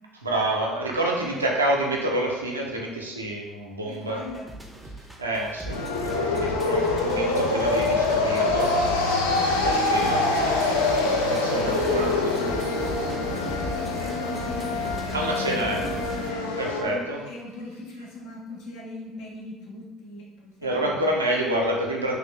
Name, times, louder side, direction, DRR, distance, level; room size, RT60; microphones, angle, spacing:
voice 1, 0.2-4.2 5.2-9.1 9.5-12.3 15.1-16.0 16.6-17.2 20.6-22.2, right 1 dB, 85° right, -1 dB, 0.4 m, -28 dB
voice 2, 3.8-4.5 6.3-6.7 11.5-16.6 16.8-21.1, left 2 dB, 60° left, -3 dB, 0.7 m, -40 dB
sound 1, 4.3-16.3, right 1 dB, 10° right, 0.5 m, -39 dB
sound 2, 5.7-16.8, left 3 dB, 80° left, 0.3 m, -25 dB
3.0 x 2.3 x 3.2 m, 1.1 s
figure-of-eight pair, 55°, 0 cm